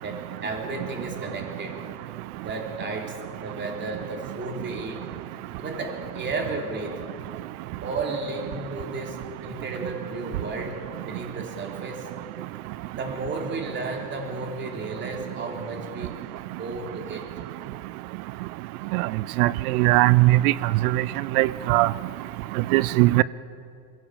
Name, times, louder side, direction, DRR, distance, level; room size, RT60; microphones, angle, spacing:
voice 1, 0.0-1.8 2.4-5.0 5.6-7.0 7.8-10.8 11.0-12.1 12.9-16.1 16.6-17.3, right 3 dB, 25° right, 1 dB, 3.3 m, -33 dB
voice 2, 19.4-20.5 20.9-21.0 21.4-21.9 22.7-23.2, right 19 dB, 70° right, 19 dB, 0.6 m, -19 dB
23.0 x 16.5 x 7.3 m, 2.4 s
supercardioid pair, 135°, 46 cm